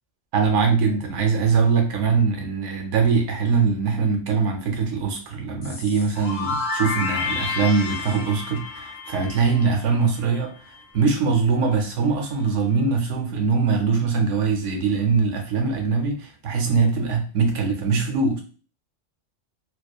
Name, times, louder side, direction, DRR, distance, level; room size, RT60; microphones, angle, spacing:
voice 1, 0.3-10.5 10.9-18.4, right 5 dB, 70° right, 3 dB, 0.9 m, -22 dB
sound 1, 5.6-10.4, left 4 dB, 65° left, 0.4 m, -30 dB
2.8 x 2.2 x 2.3 m, 0.38 s
omnidirectional pair, 1.3 m